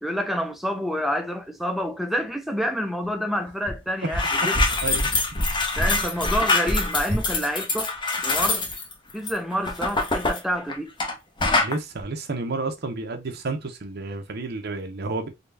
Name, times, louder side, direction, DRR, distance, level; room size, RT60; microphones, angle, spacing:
voice 1, 0.0-4.6 5.8-7.9 8.2-8.6 9.1-10.9, equal, ahead, 0.5 m, -28 dB
sound 1, 3.7-3.8 4.0-11.1 11.4-11.8, left 2 dB, 25° left, 0.8 m, -24 dB
voice 2, 11.6-15.3, right 3 dB, 55° right, 0.8 m, -30 dB
3.9 x 2.3 x 3.3 m
head